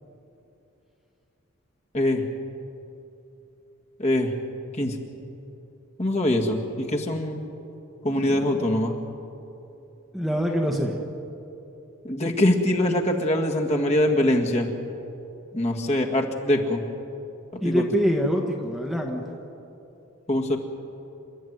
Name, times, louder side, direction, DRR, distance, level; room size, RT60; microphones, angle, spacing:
voice 1, 4.0-4.3 4.8-5.0 6.0-7.4 8.0-9.0 12.0-14.7 15.5-16.8 17.6-17.9 20.3-20.6, left 1 dB, 30° left, 1 dB, 1.9 m, -23 dB
voice 2, 8.2-8.6 10.1-11.0 17.6-19.2, equal, ahead, 0 dB, 1.4 m, -25 dB
28.0 x 12.5 x 9.5 m, 2.9 s
head